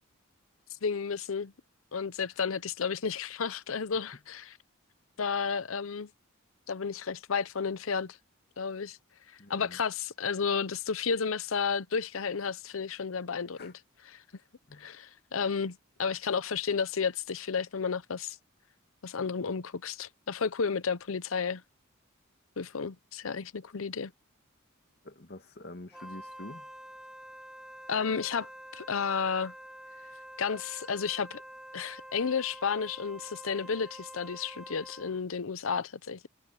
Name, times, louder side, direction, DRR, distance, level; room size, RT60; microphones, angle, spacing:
voice 1, 0.8-1.5 1.9-4.6 5.2-6.1 6.7-8.2 8.6-9.0 9.3-13.7 14.1-14.2 14.8-18.4 19.0-21.6 22.6-24.1 27.9-29.5 30.4-31.4 31.7-36.3, left 5 dB, 75° left, 0.7 m, -32 dB
voice 2, 9.4-9.8 13.5-13.7 14.7-15.0 25.0-26.7, left 1 dB, 50° left, 2.1 m, -47 dB
Wind instrument woodwind instrument, 25.9-35.2, equal, 5° right, 0.7 m, -47 dB
head